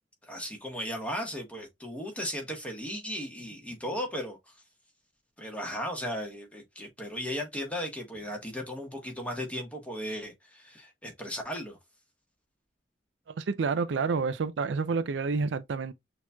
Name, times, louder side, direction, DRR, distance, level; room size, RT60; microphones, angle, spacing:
voice 1, 0.2-4.5 5.4-11.8, equal, 10° left, 1.3 m, -36 dB
voice 2, 13.3-15.9, right 4 dB, 85° right, 0.4 m, -29 dB
6.2 x 2.9 x 2.3 m
head